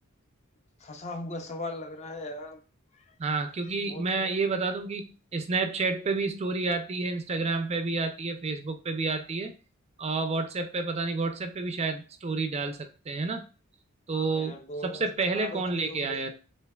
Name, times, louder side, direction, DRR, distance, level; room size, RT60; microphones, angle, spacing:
voice 1, 0.8-2.6 2.9-3.2 3.6-4.0 14.1-15.1 15.3-16.3, left 1 dB, 30° left, 5 dB, 0.6 m, -39 dB
voice 2, 3.2-9.5 10.0-13.5 14.1-14.6 14.8-16.3, right 3 dB, 30° right, 7 dB, 0.4 m, -30 dB
6.6 x 2.8 x 2.3 m, 0.35 s
head